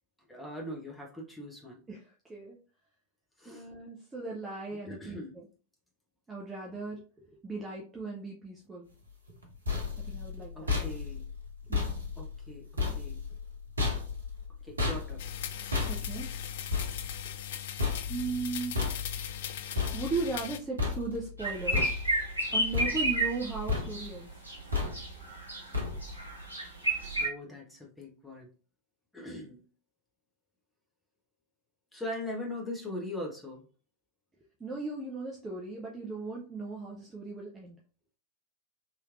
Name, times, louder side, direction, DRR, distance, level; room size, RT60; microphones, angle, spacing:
voice 1, 0.3-1.8 3.4-3.7 4.8-5.3 10.5-11.3 12.2-12.7 13.0-13.2 14.6-15.2 27.2-28.5 29.1-29.6 31.9-33.7, left 1 dB, 5° left, -2 dB, 1.2 m, -40 dB
voice 2, 1.9-2.6 3.4-5.5 6.3-8.9 10.0-10.7 11.7-12.1 15.9-16.3 18.1-18.8 19.9-22.0 22.5-24.3 34.6-37.8, right 3 dB, 15° right, -3 dB, 0.6 m, -37 dB
sound 1, 9.3-20.5 20.8-21.4 21.7-22.4 22.7-23.4 23.7-24.2 24.7-25.3 25.7-26.3, left 4 dB, 75° right, 0.8 m, -34 dB
sound 2, 15.2-20.6, left 10 dB, 55° left, 0.3 m, -40 dB
sound 3, 21.4-24.1 24.4-25.7 25.9-27.3, right 2 dB, 90° left, 0.9 m, -31 dB
3.1 x 3.1 x 2.4 m, 0.36 s
figure-of-eight pair, 90°, 0 cm